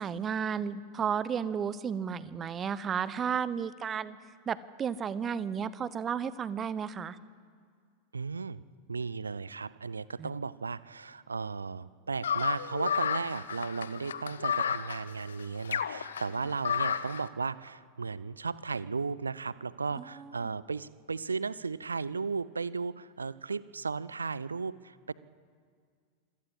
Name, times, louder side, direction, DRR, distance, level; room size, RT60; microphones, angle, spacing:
voice 1, 0.0-4.2 4.5-7.2 10.2-10.3 19.9-20.5, right 7 dB, 25° right, 18 dB, 0.9 m, -33 dB
voice 2, 8.1-8.6 8.9-25.1, right 4 dB, 75° right, 19 dB, 0.6 m, -35 dB
sound 1, 12.2-17.2, left 7 dB, 65° left, 0.9 m, -32 dB
25.5 x 17.0 x 7.9 m, 2.1 s
figure-of-eight pair, 90°, 0 cm